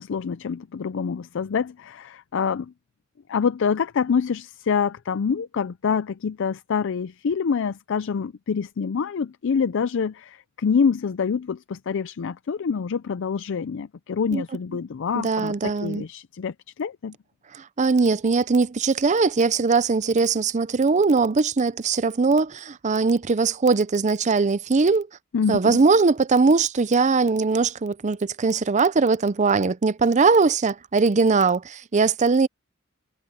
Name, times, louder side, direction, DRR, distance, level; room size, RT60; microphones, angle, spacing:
voice 1, 0.0-2.7 3.3-17.2 25.3-25.8, left 6 dB, 65° left, 0.4 m, -26 dB
voice 2, 15.1-16.0 17.5-25.1 25.5-32.5, right 4 dB, 35° right, 0.5 m, -20 dB
head